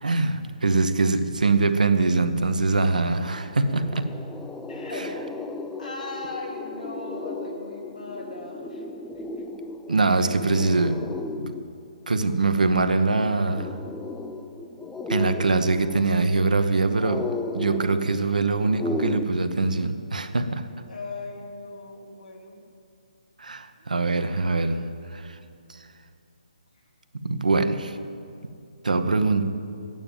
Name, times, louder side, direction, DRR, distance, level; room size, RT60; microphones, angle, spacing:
voice 1, 0.0-4.1 9.9-11.1 11.4-11.5 12.1-13.7 15.1-17.3 17.5-20.7 23.4-24.8 25.1-25.4 27.1-28.0 28.8-29.5, right 3 dB, 70° right, 8 dB, 1.0 m, -23 dB
sound 1, 2.7-2.8 3.0-19.2, left 3 dB, 5° left, 0.4 m, -35 dB
voice 2, 4.7-5.3 5.8-8.8 9.4-9.5 20.9-22.6 23.8-24.1, left 2 dB, 70° left, -1 dB, 2.9 m, -38 dB
12.0 x 9.1 x 8.9 m, 2.4 s
figure-of-eight pair, 140°, 4 cm